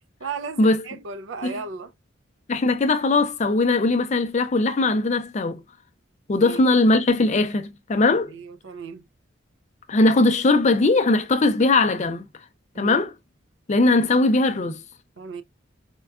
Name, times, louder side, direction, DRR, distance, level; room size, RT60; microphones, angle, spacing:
voice 1, 0.2-1.9 6.4-6.6 8.3-9.0 12.7-13.0 15.2-15.4, right 5 dB, 70° right, 0.4 m, -35 dB
voice 2, 2.5-5.6 6.3-8.3 9.9-12.3 12.8-13.1 13.7-14.8, left 2 dB, 35° left, 0.4 m, -20 dB
4.5 x 2.2 x 2.3 m
head